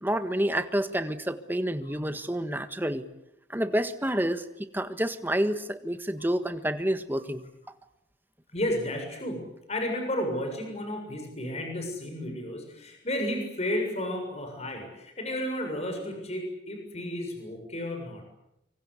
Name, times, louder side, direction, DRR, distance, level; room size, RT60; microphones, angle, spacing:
voice 1, 0.0-3.0 3.5-7.4, right 1 dB, 10° right, 10 dB, 1.5 m, -29 dB
voice 2, 8.5-18.2, left 1 dB, 35° left, 4 dB, 7.0 m, -32 dB
25.5 x 24.5 x 8.3 m, 0.83 s
head